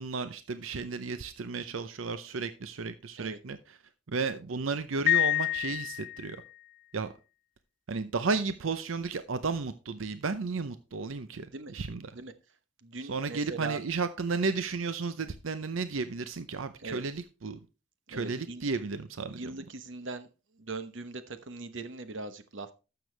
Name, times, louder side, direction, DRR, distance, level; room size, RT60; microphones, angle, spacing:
voice 1, 0.0-3.8 4.1-6.4 6.9-7.1 7.9-12.1 13.0-17.7 18.1-19.6, right 4 dB, 85° right, 0.7 m, -33 dB
Piano, 5.1-6.5, left 15 dB, 45° left, 0.5 m, -28 dB
voice 2, 12.8-13.8 16.8-17.0 18.1-18.6 19.3-20.3 20.6-22.7, right 3 dB, 70° right, 1.0 m, -40 dB
12.5 x 6.9 x 3.3 m
head